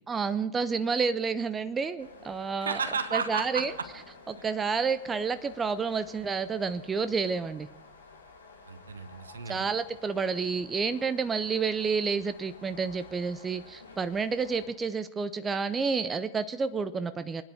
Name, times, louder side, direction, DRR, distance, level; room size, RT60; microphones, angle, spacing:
voice 1, 0.1-2.8 3.1-3.7 4.3-7.7 9.5-17.4, right 5 dB, 15° right, 13 dB, 0.6 m, -30 dB
sound 1, 2.0-14.7, left 4 dB, 75° left, 2.9 m, -52 dB
voice 2, 2.6-3.7 8.7-9.6, right 5 dB, 70° right, 12 dB, 1.2 m, -33 dB
24.5 x 9.7 x 4.8 m, 0.97 s
figure-of-eight pair, 90°, 0 cm